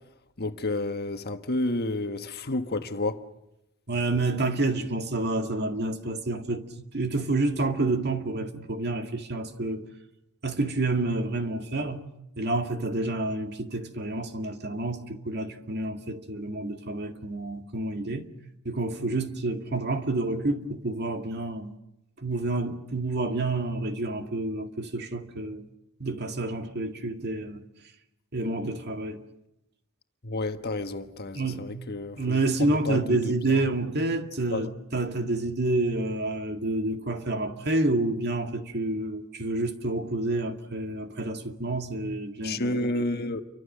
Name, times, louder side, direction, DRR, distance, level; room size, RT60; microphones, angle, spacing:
voice 1, 0.4-3.2 30.2-33.6 34.5-34.7 42.4-43.4, left 2 dB, 50° left, 1.5 m, -30 dB
voice 2, 3.9-6.7 6.9-9.9 10.4-12.0 12.4-18.3 18.6-21.8 22.2-25.7 26.0-27.6 28.3-29.2 31.3-31.7 32.2-42.8, right 2 dB, 50° right, 2.1 m, -29 dB
29.5 x 24.5 x 6.7 m
head